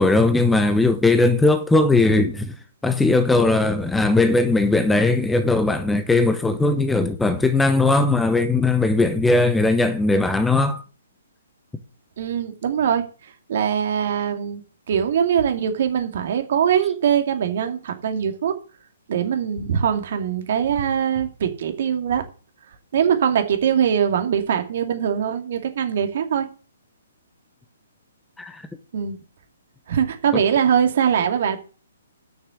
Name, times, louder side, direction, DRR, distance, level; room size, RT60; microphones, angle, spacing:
voice 1, 0.0-2.5 2.8-10.8 28.4-28.6 30.3-30.4, left 2 dB, 5° left, 0.9 m, -19 dB
voice 2, 12.2-13.1 13.5-14.6 14.9-18.5 19.1-22.2 22.9-26.5 28.9-29.2 29.9-31.6, right 8 dB, 55° right, 2.5 m, -22 dB
9.2 x 6.7 x 7.9 m
hypercardioid pair, 135°, 0 cm